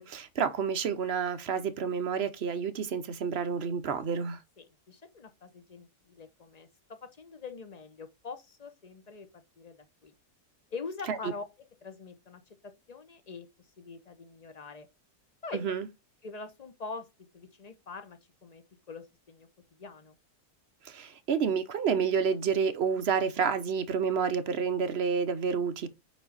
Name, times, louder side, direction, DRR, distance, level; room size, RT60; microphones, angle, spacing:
voice 1, 0.0-4.4 11.1-11.2 15.5-15.9 20.8-25.9, right 6 dB, 55° right, 0.7 m, -29 dB
voice 2, 4.6-9.3 9.6-9.8 10.0-10.1 10.7-11.4 11.8-13.5 13.8-14.9 15.4-15.6 16.2-17.1 17.3-19.5 19.8-20.1, left 4 dB, 35° left, 0.7 m, -44 dB
5.2 x 5.1 x 3.9 m
omnidirectional pair, 1.7 m